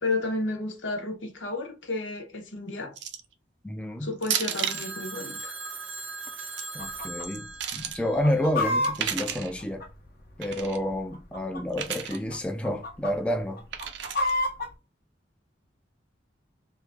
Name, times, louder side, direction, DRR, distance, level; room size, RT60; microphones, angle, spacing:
voice 1, 0.0-2.9 4.0-5.6, left 2 dB, 90° left, 1.0 m, -32 dB
sound 1, 3.0-3.3 4.2-4.9 6.3-6.6 7.2-8.0 8.8-9.5 10.4-10.8 11.7-12.2 13.7-14.3, right 9 dB, 65° right, 0.5 m, -32 dB
voice 2, 3.6-4.1 6.7-7.4 7.7-9.8 10.4-13.6, left 1 dB, 5° left, 0.4 m, -29 dB
Telephone, 4.5-8.7, right 3 dB, 85° right, 0.8 m, -39 dB
Chicken rooster, 6.8-7.3 7.5-7.6 8.0-10.3 11.0-11.8 12.1-12.4 12.6-13.1 13.6-14.7, left 1 dB, 55° left, 0.7 m, -29 dB
3.2 x 2.4 x 3.4 m
head